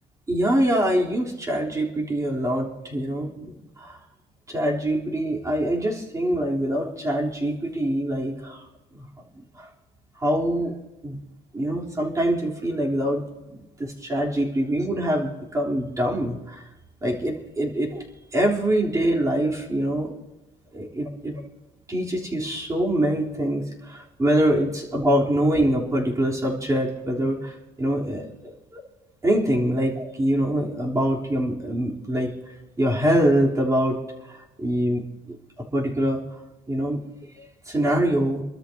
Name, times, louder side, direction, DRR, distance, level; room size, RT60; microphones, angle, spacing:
voice 1, 0.3-4.0 4.5-8.6 8.9-9.1 9.4-9.7 10.2-10.7 11.0-11.2 11.5-16.6 17.0-18.0 18.3-20.1 20.7-21.4 21.9-28.8 29.2-32.3 32.8-34.0 34.3-35.4 35.7-36.2 36.7-37.0 37.4-38.4, right 1 dB, 20° right, -3 dB, 3.6 m, -24 dB
27.0 x 13.0 x 2.9 m, 1.0 s
cardioid pair, 110°, 17 cm